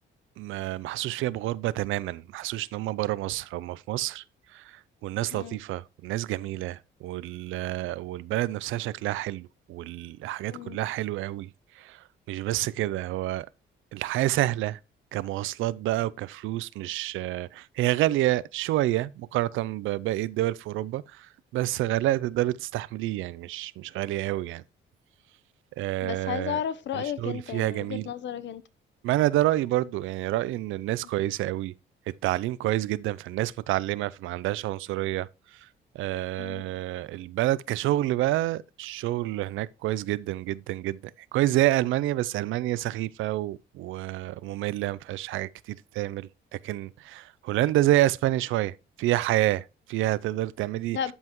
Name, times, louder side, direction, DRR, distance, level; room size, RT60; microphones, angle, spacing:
voice 1, 0.4-4.2 4.5-13.5 13.9-14.8 15.1-24.6 25.8-26.6 26.9-28.1 29.0-31.7 32.1-35.7 35.9-41.0 41.3-51.0, right 15 dB, 85° right, 0.5 m, -28 dB
voice 2, 10.5-10.8 26.0-28.6 36.4-36.6 50.9-51.1, left 9 dB, 65° left, 0.9 m, -33 dB
12.5 x 5.5 x 3.0 m
cardioid pair, 90°, 20 cm